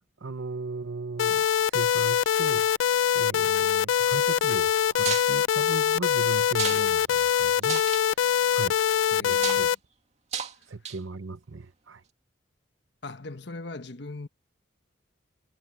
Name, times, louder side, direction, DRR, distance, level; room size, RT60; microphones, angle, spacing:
voice 1, 0.2-2.7 3.1-8.8 9.2-9.7 10.6-12.0, right 3 dB, 80° right, 0.8 m, -37 dB
sound 1, 1.2-9.7, left 9 dB, 85° left, 0.4 m, -23 dB
sound 2, 5.0-5.3 6.5-6.8 7.2-7.3 7.6-8.0 9.3-9.6 10.3-10.5 10.8-11.2, right 7 dB, 35° right, 2.2 m, -32 dB
voice 2, 9.1-9.7 13.0-14.3, left 2 dB, 60° left, 1.3 m, -39 dB
head